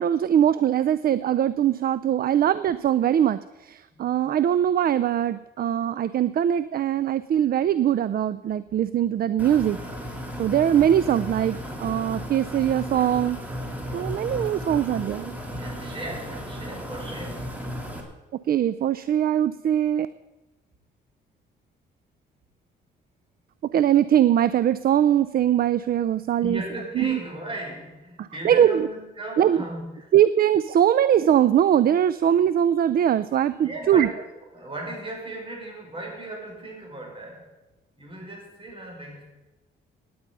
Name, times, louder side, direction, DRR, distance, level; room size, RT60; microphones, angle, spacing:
voice 1, 0.0-9.8 10.4-13.4 13.9-15.3 18.5-20.1 23.7-26.6 27.0-27.2 28.2-28.9 29.4-29.6 30.1-34.1, right 10 dB, 50° right, 16 dB, 0.5 m, -21 dB
sound 1, 9.4-18.0, equal, 10° right, 3.1 m, -35 dB
voice 2, 15.6-17.6 26.4-30.1 33.6-34.2 34.5-37.5 38.0-39.2, right 2 dB, 25° right, -1 dB, 5.8 m, -36 dB
17.0 x 9.4 x 5.4 m, 1.0 s
cardioid pair, 90°, 20 cm